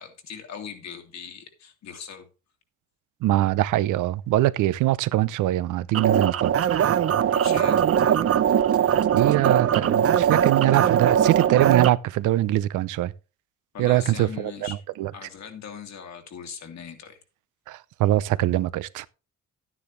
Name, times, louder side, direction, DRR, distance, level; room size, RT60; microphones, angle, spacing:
voice 1, 0.0-2.3 7.3-7.9 13.7-14.8 15.1-17.2, left 7 dB, 60° left, 2.9 m, -40 dB
voice 2, 3.2-6.5 9.1-13.1 13.8-14.7 15.0-15.1 17.7-19.1, right 15 dB, 90° right, 0.7 m, -23 dB
sound 1, 5.9-11.9, right 9 dB, 50° right, 0.8 m, -21 dB
11.5 x 9.8 x 3.2 m
cardioid pair, 90°, 30 cm